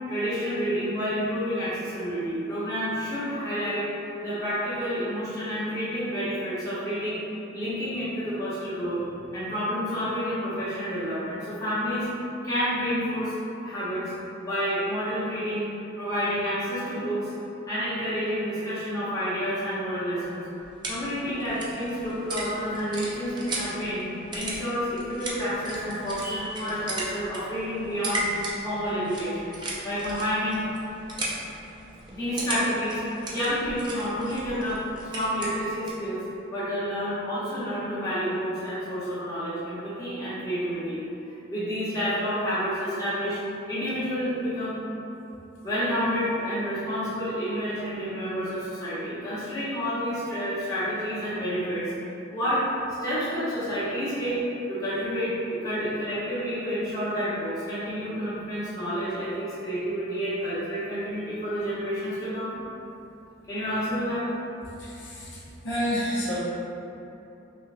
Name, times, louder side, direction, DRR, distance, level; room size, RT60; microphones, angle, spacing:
voice 1, 0.1-3.9 4.2-9.0 9.3-12.1 12.4-13.3 13.6-14.1 14.4-15.7 16.0-17.3 17.7-20.4 20.9-24.1 24.3-28.3 28.6-29.5 29.8-30.7 32.1-33.0 33.3-36.2 36.5-41.0 41.5-43.4 43.7-44.8 45.6-51.9 52.3-52.6 53.0-54.4 54.7-62.5 63.5-64.3, equal, 15° left, -12 dB, 1.0 m, -29 dB
sound 1, 20.4-36.1, right 2 dB, 25° right, 0.4 m, -37 dB
voice 2, 64.8-66.4, equal, 70° left, -8 dB, 0.9 m, -30 dB
5.5 x 2.3 x 2.5 m, 3.0 s
head